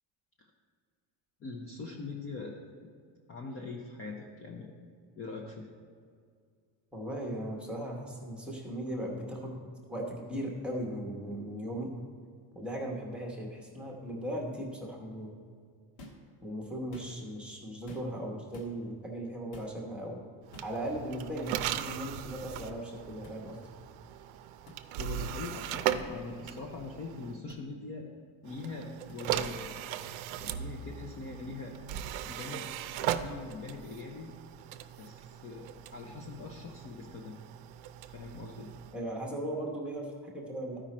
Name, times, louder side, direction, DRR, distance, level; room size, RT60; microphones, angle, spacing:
voice 1, 1.4-2.6 3.3-4.7 5.2-5.7 25.0-28.1 28.4-29.8 30.4-31.8 32.2-34.3 35.0-37.4 38.1-38.7, left 4 dB, 30° left, 0 dB, 0.5 m, -42 dB
voice 2, 6.9-9.6 9.9-11.9 12.5-15.3 16.4-20.2 20.6-23.7 38.9-40.8, right 1 dB, ahead, -2 dB, 0.9 m, -38 dB
sound 1, 16.0-16.3 16.8-17.3 17.9-18.2 18.5-18.7 19.5-19.8 20.5-20.8 21.8-21.9 23.2-23.4 24.6-24.8 26.0-26.1 27.5-27.6 29.1-29.2, left 1 dB, 65° left, 1.6 m, -50 dB
sound 2, 20.5-27.4 28.4-39.0, right 10 dB, 75° right, 0.6 m, -38 dB
13.0 x 5.0 x 4.2 m, 2.2 s
cardioid pair, 175°, 48 cm